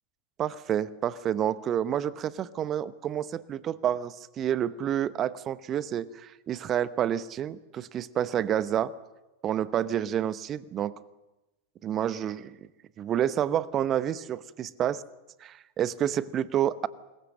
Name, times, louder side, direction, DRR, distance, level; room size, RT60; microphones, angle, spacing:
voice 1, 0.4-8.9 9.4-10.9 11.8-12.6 13.0-15.0 15.4-16.9, right 10 dB, 30° right, 17 dB, 1.1 m, -29 dB
27.0 x 22.0 x 6.5 m, 1.1 s
figure-of-eight pair, 90°, 0 cm